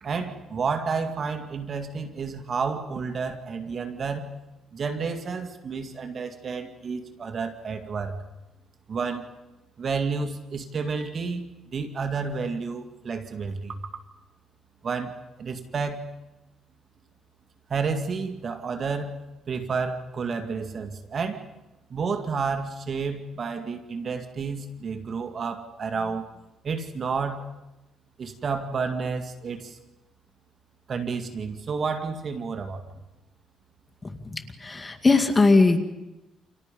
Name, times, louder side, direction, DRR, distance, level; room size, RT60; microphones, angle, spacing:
voice 1, 0.0-4.3 4.7-8.2 8.9-9.3 9.8-14.0 14.8-16.1 17.7-21.5 21.9-26.2 26.6-27.5 28.2-29.8 30.9-32.8, right 5 dB, 50° right, 6 dB, 2.4 m, -30 dB
voice 2, 34.0-35.8, left 3 dB, 25° left, 7 dB, 2.4 m, -20 dB
29.5 x 27.5 x 5.4 m, 0.97 s
cardioid pair, 90°, 0 cm